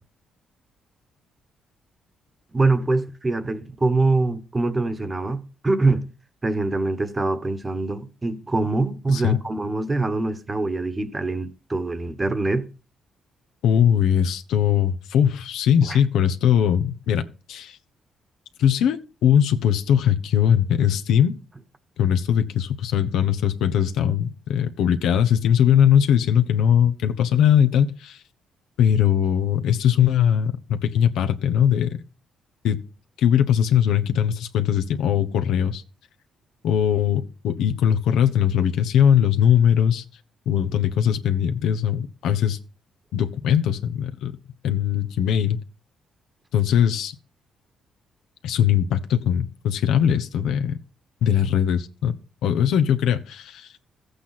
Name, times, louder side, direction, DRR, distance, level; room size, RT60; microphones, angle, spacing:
voice 1, 2.5-6.1 6.4-12.7 15.9-16.0, right 3 dB, 20° right, 1.4 m, -24 dB
voice 2, 9.1-9.4 13.6-17.8 18.6-21.4 22.0-28.2 28.8-32.0 32.6-32.8 33.2-35.8 36.6-40.0 40.5-42.6 43.1-44.4 44.6-45.6 46.5-47.1 48.4-50.8 51.2-52.1 52.4-53.7, left 9 dB, 85° left, 1.1 m, -20 dB
14.0 x 8.4 x 5.9 m
cardioid pair, 90°, 0 cm